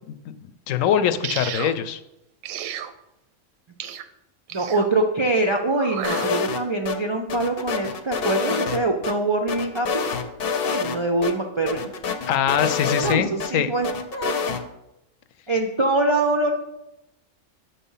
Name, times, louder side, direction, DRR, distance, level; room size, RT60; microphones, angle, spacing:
voice 1, 0.1-2.0 12.3-13.7, left 9 dB, 80° left, 11 dB, 1.0 m, -23 dB
sound 1, 1.2-1.8 2.4-2.9 3.8-4.1 4.5-4.9 5.8-6.3, right 10 dB, 85° right, 1.0 m, -32 dB
voice 2, 4.5-10.0 10.5-11.9 13.0-14.3 15.5-16.5, right 2 dB, 50° right, 2 dB, 0.3 m, -24 dB
sound 2, 6.0-7.0 7.3-9.1 9.5-11.0 11.2-11.3 11.7-13.5 13.8-14.6, left 6 dB, 55° left, 0.8 m, -27 dB
6.1 x 5.5 x 5.5 m, 0.89 s
omnidirectional pair, 1.4 m